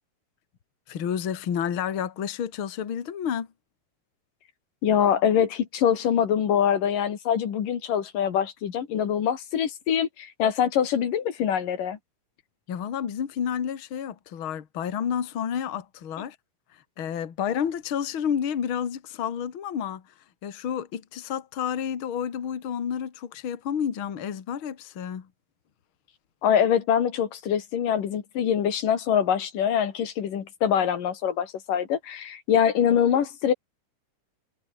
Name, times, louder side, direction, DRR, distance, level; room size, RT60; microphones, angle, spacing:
voice 1, 0.9-3.5 12.7-16.4 17.0-20.0 20.4-25.3, left 8 dB, 45° left, 2.4 m, -30 dB
voice 2, 4.8-12.0 26.4-33.5, left 8 dB, 85° left, 4.0 m, -24 dB
omnidirectional pair, 3.7 m